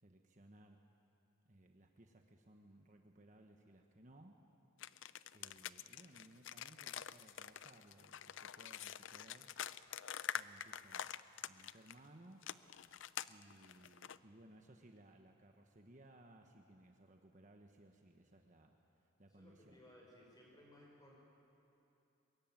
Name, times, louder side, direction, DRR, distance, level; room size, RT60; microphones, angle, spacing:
voice 1, 0.0-0.8 1.4-4.4 5.3-9.5 10.3-12.5 13.3-19.8, right 1 dB, 35° right, 3 dB, 1.2 m, -62 dB
sound 1, 4.8-12.0 12.4-14.2, left 9 dB, 60° left, 0.5 m, -46 dB
voice 2, 19.3-21.2, left 1 dB, 20° left, -2 dB, 6.1 m, -62 dB
23.5 x 22.0 x 9.1 m, 2.8 s
head